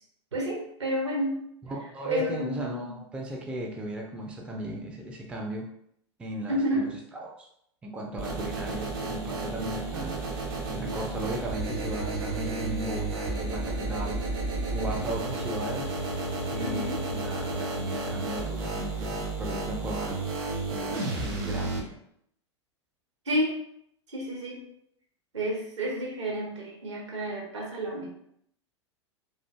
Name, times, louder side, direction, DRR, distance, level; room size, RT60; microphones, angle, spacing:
voice 1, 0.3-1.3 2.0-3.0 6.5-6.9 16.6-17.0 23.2-23.6 24.1-24.6 25.3-28.1, equal, 75° right, -1 dB, 1.0 m, -30 dB
voice 2, 1.6-5.7 6.2-7.5 7.8-10.2 10.7-14.2 14.7-15.9 16.5-20.2 20.7-22.0, right 1 dB, 5° right, 0 dB, 0.3 m, -36 dB
sound 1, 8.2-21.8, right 2 dB, 50° right, 0.8 m, -32 dB
3.1 x 2.4 x 2.2 m, 0.71 s
figure-of-eight pair, 95°, 15 cm